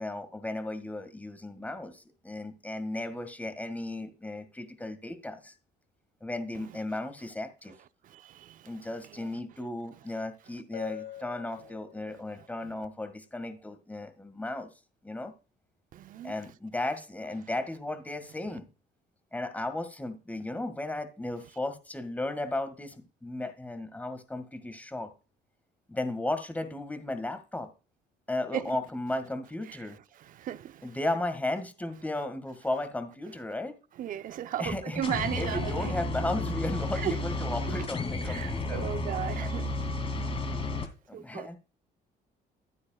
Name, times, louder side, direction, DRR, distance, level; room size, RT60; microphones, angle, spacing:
voice 1, 0.0-5.5 6.2-7.7 8.6-14.7 15.0-15.3 16.2-18.7 19.3-25.1 25.9-27.7 28.3-30.0 30.8-33.7 34.6-38.9 39.2-39.3 41.1-41.6, left 2 dB, 10° left, 1.8 m, -35 dB
voice 2, 8.1-8.6 15.9-16.3 28.5-28.6 30.4-30.8 34.0-35.9 37.0-37.1 38.3-39.7 41.1-41.5, right 11 dB, 55° right, 0.7 m, -35 dB
Bell, 10.7-12.4, left 12 dB, 80° left, 2.6 m, -43 dB
sound 1, 35.0-40.9, left 2 dB, 35° left, 2.6 m, -32 dB
12.0 x 9.8 x 2.3 m
cardioid pair, 110°, 17 cm